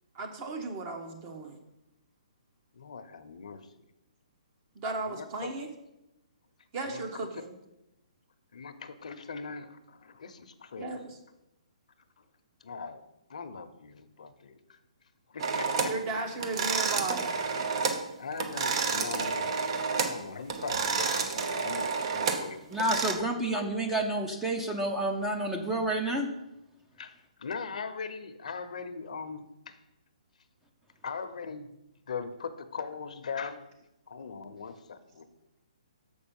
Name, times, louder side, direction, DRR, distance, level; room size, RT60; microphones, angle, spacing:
voice 1, 0.1-1.6 4.7-5.7 6.7-7.5 10.8-11.2 15.9-17.3, right 3 dB, 30° right, 4 dB, 1.2 m, -35 dB
voice 2, 2.7-3.6 5.1-5.5 6.9-7.3 8.5-11.0 12.6-13.0 13.3-14.6 15.3-15.9 18.2-19.5 20.1-22.8 27.0-29.8 31.0-31.7 32.1-33.6 34.1-35.3, left 5 dB, 70° left, 10 dB, 0.8 m, -40 dB
sound 1, 15.4-16.0 16.4-18.0 18.3-20.2 20.5-23.1, right 5 dB, 45° right, 1.0 m, -30 dB
voice 3, 22.7-26.3, right 1 dB, 5° right, 2 dB, 0.7 m, -29 dB
6.8 x 5.4 x 7.1 m, 0.90 s
hypercardioid pair, 155°, 4 cm